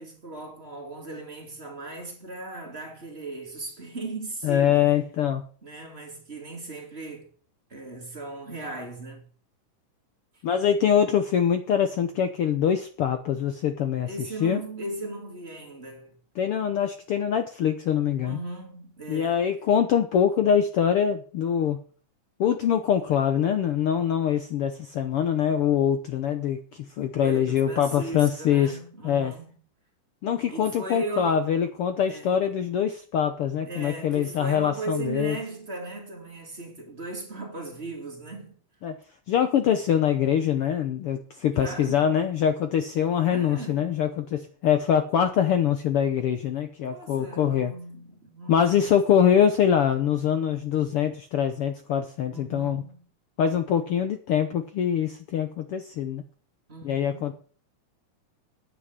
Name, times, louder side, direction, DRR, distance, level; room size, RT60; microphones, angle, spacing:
voice 1, 0.0-4.9 5.6-7.3 7.7-9.3 10.3-10.4 14.0-16.2 18.2-19.4 27.2-29.5 30.5-31.5 32.1-32.3 33.6-38.5 41.6-42.1 43.2-43.9 46.8-49.6 52.3-53.0 56.7-57.3, right 2 dB, 20° right, 2.7 m, -37 dB
voice 2, 4.4-5.4 10.4-14.1 14.4-14.6 16.4-18.4 19.1-21.8 22.4-28.8 29.0-29.3 30.2-35.4 38.8-39.0 39.3-47.7 48.5-52.8 53.4-56.2 56.8-57.3, left 8 dB, 70° left, 1.4 m, -24 dB
9.5 x 8.5 x 7.4 m
omnidirectional pair, 3.5 m